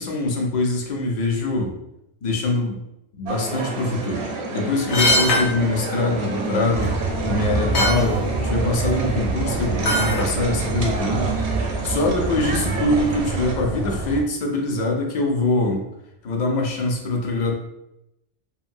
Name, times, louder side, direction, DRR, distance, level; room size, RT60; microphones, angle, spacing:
voice 1, 0.0-1.7 2.2-2.8 3.1-7.0 7.2-11.4 11.8-15.8 16.2-17.5, left 2 dB, 55° left, 1 dB, 0.5 m, -23 dB
sound 1, 3.3-13.5, right 3 dB, 70° right, 0.8 m, -29 dB
sound 2, 4.9-5.5 6.8-6.9 7.4-7.5 7.7-8.0 9.8-10.3 10.7-10.8, left 1 dB, 70° left, 1.0 m, -20 dB
sound 3, 6.7-14.2, right 3 dB, 45° right, 0.6 m, -27 dB
2.8 x 2.6 x 2.5 m, 0.87 s
omnidirectional pair, 1.2 m